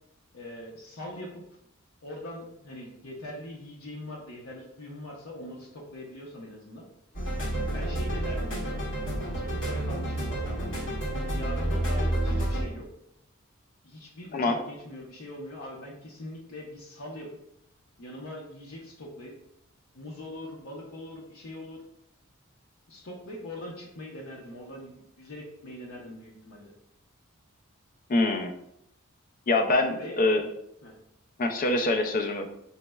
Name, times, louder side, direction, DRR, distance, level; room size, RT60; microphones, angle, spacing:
voice 1, 0.3-1.4 2.0-6.8 7.7-10.6 11.3-12.9 13.8-17.4 18.0-19.3 19.9-21.8 22.9-26.7 30.0-30.2 30.8-31.0, left 1 dB, 85° left, -2 dB, 0.6 m, -42 dB
sound 1, 7.1-12.6, right 1 dB, 60° left, 1.4 m, -29 dB
voice 2, 28.1-28.5 29.5-30.4 31.4-32.4, left 2 dB, 40° left, 5 dB, 0.4 m, -24 dB
5.3 x 2.0 x 2.2 m, 0.77 s
head